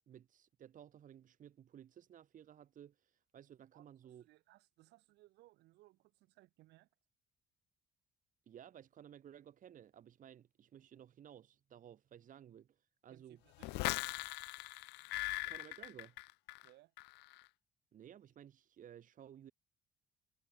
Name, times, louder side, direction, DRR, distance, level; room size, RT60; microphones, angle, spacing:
voice 1, 0.1-4.3 8.5-12.8 13.0-13.4 15.4-16.2 17.9-19.5, right 10 dB, 50° right, 2.4 m, -56 dB
voice 2, 3.7-6.9 13.1-13.9 16.6-16.9, right 18 dB, 85° right, 5.0 m, -65 dB
sound 1, 13.6-16.7 17.0-17.4, left 23 dB, 90° left, 0.5 m, -40 dB
cardioid pair, 110°, 17 cm